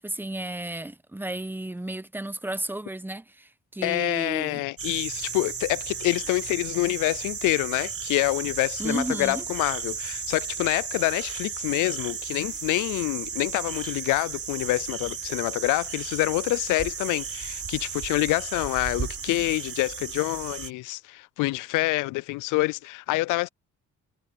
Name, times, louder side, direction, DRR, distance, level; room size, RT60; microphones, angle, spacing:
voice 1, 0.0-4.6 8.8-9.4, right 1 dB, 5° right, 1.0 m, -33 dB
voice 2, 3.8-23.5, left 20 dB, 90° left, 0.5 m, -27 dB
sound 1, 4.8-20.7, right 6 dB, 50° right, 4.0 m, -34 dB
cardioid pair, 90°, 30 cm